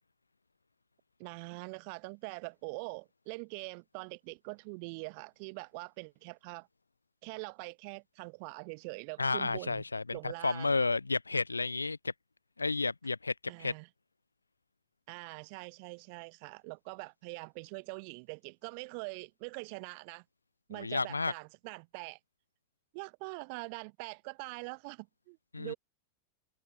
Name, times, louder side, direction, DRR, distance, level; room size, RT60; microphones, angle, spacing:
voice 1, 1.2-6.7 7.2-9.8 10.1-10.7 13.5-13.9 15.1-20.2 20.7-22.2 22.9-25.8, right 36 dB, 45° right, 2.6 m, -43 dB
voice 2, 9.2-10.2 10.4-12.1 12.6-13.7 20.7-21.3 25.5-25.7, left 3 dB, 80° left, 1.6 m, -31 dB
figure-of-eight pair, 90°, 0 cm